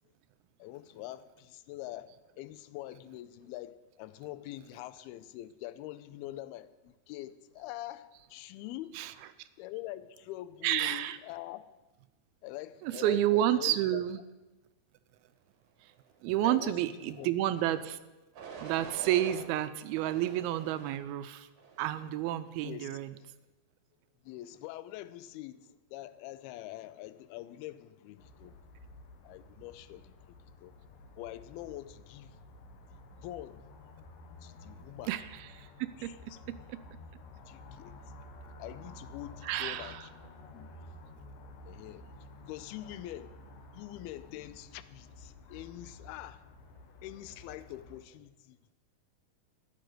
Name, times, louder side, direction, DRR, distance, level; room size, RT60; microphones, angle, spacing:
voice 1, 0.6-9.0 9.6-11.7 12.4-14.0 16.4-17.3 22.6-22.9 23.2-23.3 24.2-28.6 29.2-30.8 31.2-32.4 33.2-33.7 34.4-35.2 36.0-36.5 37.5-38.0 38.6-40.1 40.5-40.9 41.7-42.0 42.5-43.4 43.7-46.4 47.0-48.7, left 15 dB, 80° left, 2.3 m, -44 dB
voice 2, 10.6-11.2 12.8-14.2 15.8-15.9 16.2-18.0 18.6-21.5 21.8-23.1 35.1-36.8 39.4-40.1, right 13 dB, 80° right, 2.2 m, -30 dB
sound 1, 17.4-17.8 18.3-19.4 20.0-21.0 21.6-22.0, right 6 dB, 55° right, 3.2 m, -46 dB
sound 2, 28.2-48.0, left 2 dB, 65° left, 2.5 m, -52 dB
12.0 x 7.9 x 9.2 m
omnidirectional pair, 4.8 m